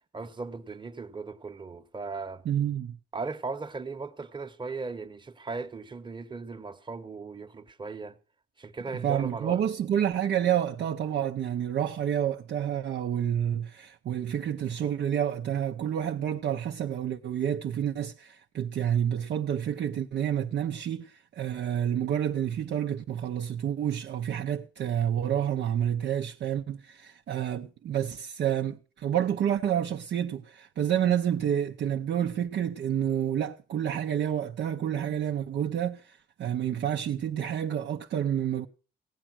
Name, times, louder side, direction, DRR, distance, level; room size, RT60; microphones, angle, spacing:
voice 1, 0.0-2.4 3.1-8.2 8.6-9.6, right 4 dB, 25° right, 1.1 m, -37 dB
voice 2, 2.5-3.0 9.0-38.7, right 9 dB, 60° right, 0.7 m, -29 dB
16.5 x 8.9 x 6.1 m
cardioid pair, 90°, 20 cm